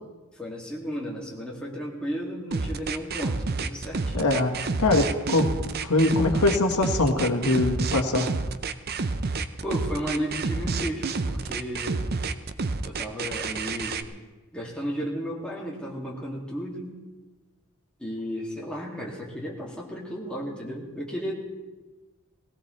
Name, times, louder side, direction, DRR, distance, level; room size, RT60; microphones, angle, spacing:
voice 1, 0.4-4.3 9.6-12.1 12.8-14.0 14.5-16.9 18.0-21.3, equal, 5° left, -4 dB, 2.5 m, -34 dB
sound 1, 2.5-14.0, right 4 dB, 45° right, 0.6 m, -29 dB
voice 2, 4.1-4.5 4.8-8.3, left 2 dB, 80° left, 3 dB, 1.6 m, -23 dB
19.0 x 16.5 x 3.3 m, 1.2 s
head